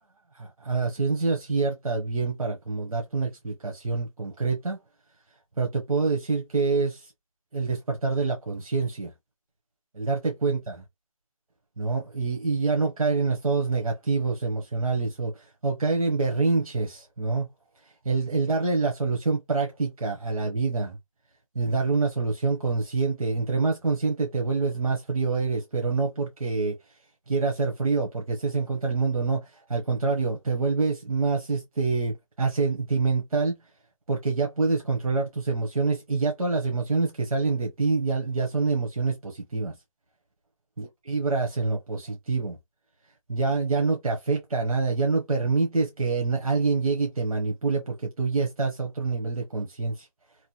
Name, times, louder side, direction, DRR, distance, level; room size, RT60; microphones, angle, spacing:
voice 1, 0.3-4.8 5.6-7.1 7.5-9.1 9.9-10.7 11.8-17.5 18.0-21.0 21.5-26.8 27.3-33.6 34.1-39.8 40.8-42.6 43.3-50.1, right 4 dB, 85° right, 1.0 m, -26 dB
3.0 x 2.2 x 2.8 m
hypercardioid pair, 175°, 18 cm